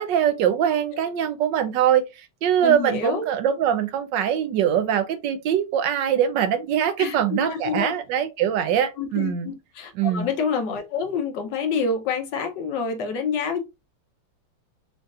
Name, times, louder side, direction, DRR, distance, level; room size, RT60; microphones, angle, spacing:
voice 1, 0.0-2.0 2.4-9.5 10.0-10.3, right 9 dB, 75° right, 1.2 m, -22 dB
voice 2, 2.6-3.3 7.0-7.9 9.0-13.6, left 5 dB, 70° left, 1.4 m, -27 dB
5.2 x 2.7 x 2.4 m
omnidirectional pair, 2.1 m